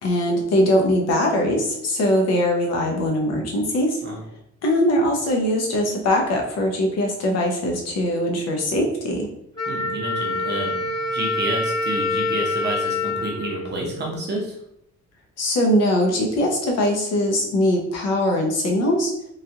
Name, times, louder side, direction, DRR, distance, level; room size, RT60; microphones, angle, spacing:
voice 1, 0.0-4.0 4.6-9.3 15.4-19.1, left 1 dB, 60° left, 1 dB, 0.7 m, -21 dB
Wind instrument woodwind instrument, 9.6-14.4, left 2 dB, 15° left, 0.5 m, -26 dB
voice 2, 9.7-10.8 11.1-14.6, right 1 dB, 35° right, -1 dB, 0.7 m, -29 dB
3.2 x 2.3 x 2.7 m, 0.74 s
cardioid pair, 165°, 29 cm